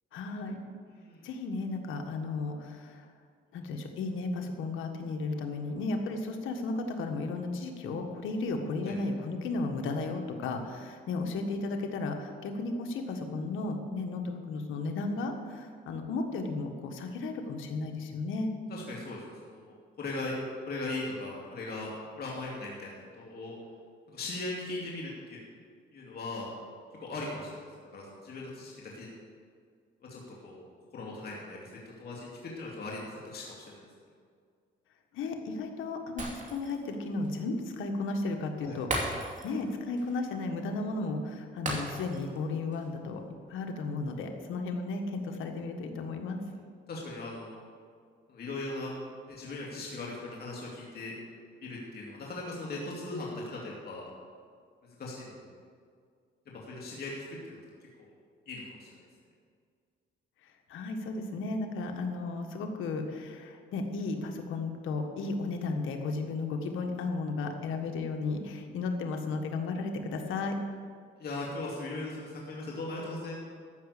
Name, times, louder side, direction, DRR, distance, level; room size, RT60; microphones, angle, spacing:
voice 1, 0.1-0.6 1.2-3.1 3.5-18.5 35.1-39.1 39.4-43.2 43.5-46.4 60.4-70.5, left 3 dB, 85° left, 4 dB, 1.5 m, -34 dB
voice 2, 1.0-1.3 8.8-8.9 18.7-20.4 20.7-23.5 24.1-25.4 25.9-26.5 27.0-27.7 27.9-29.1 30.1-30.6 30.9-33.9 38.6-38.8 46.9-47.6 48.3-48.9 49.3-51.1 51.6-53.6 53.8-54.0 55.0-55.5 56.7-57.2 57.4-57.6 58.0-58.1 58.5-58.9 71.2-73.4, left 2 dB, 50° left, -4 dB, 2.5 m, -39 dB
Shatter, 36.2-36.9 37.2-37.4 38.9-39.7 40.0-40.1 41.7-42.4 42.7-42.9, right 2 dB, 40° right, 2.7 m, -35 dB
14.0 x 6.0 x 8.3 m, 2.1 s
cardioid pair, 90°, 20 cm